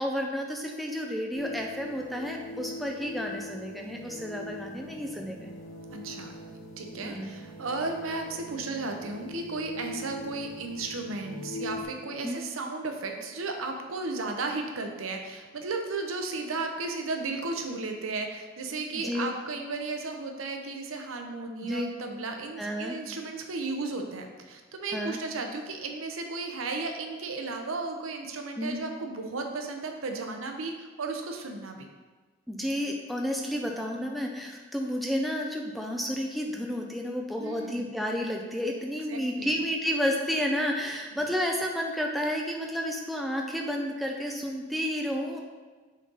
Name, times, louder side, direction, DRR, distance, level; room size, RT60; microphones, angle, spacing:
voice 1, 0.0-5.5 7.0-7.3 12.2-12.4 18.9-19.3 21.6-21.9 22.6-23.0 24.9-25.2 28.6-28.8 32.5-45.4, equal, ahead, 0 dB, 0.4 m, -31 dB
sound 1, 1.3-11.8, left 2 dB, 85° left, 0.9 m, -42 dB
voice 2, 5.9-6.3 6.8-31.9 37.4-38.0 39.1-39.5 41.1-41.2, right 3 dB, 90° right, 4 dB, 0.7 m, -34 dB
6.3 x 3.8 x 4.0 m, 1.3 s
head